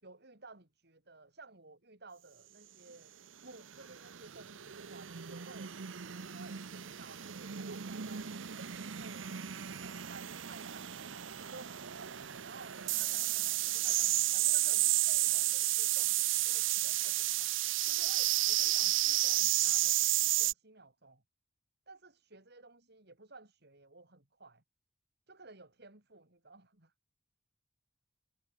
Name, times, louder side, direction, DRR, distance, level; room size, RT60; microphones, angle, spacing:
voice 1, 0.0-3.1 3.4-5.7 6.1-9.2 9.7-17.5 17.8-21.2 21.9-24.6 25.3-26.9, right 3 dB, 60° right, 4.0 m, -55 dB
sound 1, 3.7-20.5, right 15 dB, 90° right, 0.8 m, -32 dB
head